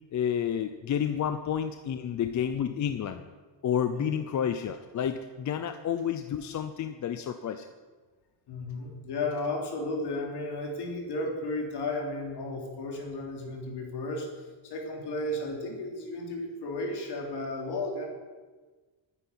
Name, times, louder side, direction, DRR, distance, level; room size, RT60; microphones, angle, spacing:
voice 1, 0.1-3.2 3.6-7.7, left 8 dB, 40° left, 9 dB, 0.7 m, -30 dB
voice 2, 8.5-18.0, left 2 dB, 60° left, 1 dB, 3.5 m, -34 dB
10.5 x 9.8 x 9.8 m, 1.4 s
cardioid pair, 160°, 45 cm